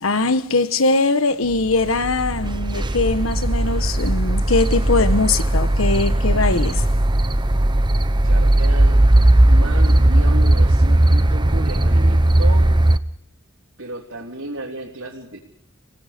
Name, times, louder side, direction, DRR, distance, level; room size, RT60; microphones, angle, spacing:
voice 1, 0.0-6.9, left 3 dB, 70° left, 1.3 m, -21 dB
sound 1, 1.7-13.0, right 1 dB, 20° right, 0.8 m, -17 dB
voice 2, 8.2-9.0 9.5-12.8 13.8-15.4, right 1 dB, 70° right, 3.5 m, -33 dB
29.5 x 18.0 x 5.2 m
head